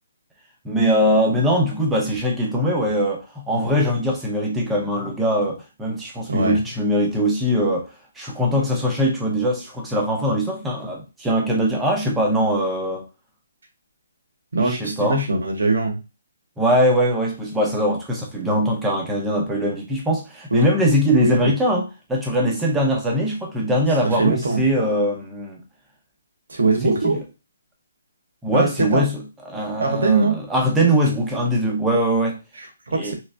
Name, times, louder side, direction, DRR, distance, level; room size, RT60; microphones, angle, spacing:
voice 1, 0.6-7.9 8.2-13.0 14.6-15.3 16.6-25.6 26.8-27.2 28.4-32.4 32.9-33.1, equal, 5° right, 0.6 m, -21 dB
voice 2, 14.5-16.0 20.5-20.7 21.2-21.5 24.2-24.6 26.5-27.2 28.5-29.0 29.8-30.4 32.6-33.1, right 3 dB, 70° right, 1.2 m, -21 dB
3.2 x 3.2 x 2.6 m
hypercardioid pair, 175°, 0 cm